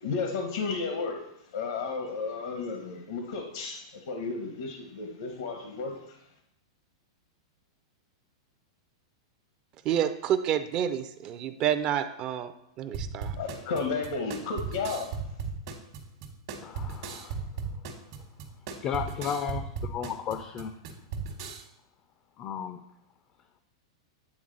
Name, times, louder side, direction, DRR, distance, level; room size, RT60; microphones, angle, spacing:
voice 1, 0.0-1.3 1.5-6.2 13.4-15.2, left 4 dB, 80° left, 4 dB, 0.9 m, -33 dB
voice 2, 9.8-12.5 12.8-13.4, right 9 dB, 35° right, 10 dB, 0.4 m, -29 dB
sound 1, 12.9-21.6, right 5 dB, 55° right, 1.1 m, -37 dB
voice 3, 16.6-17.4 18.8-20.8 22.4-22.8, left 7 dB, 30° left, 9 dB, 0.3 m, -34 dB
8.7 x 3.6 x 3.9 m, 0.79 s
supercardioid pair, 145°, 3 cm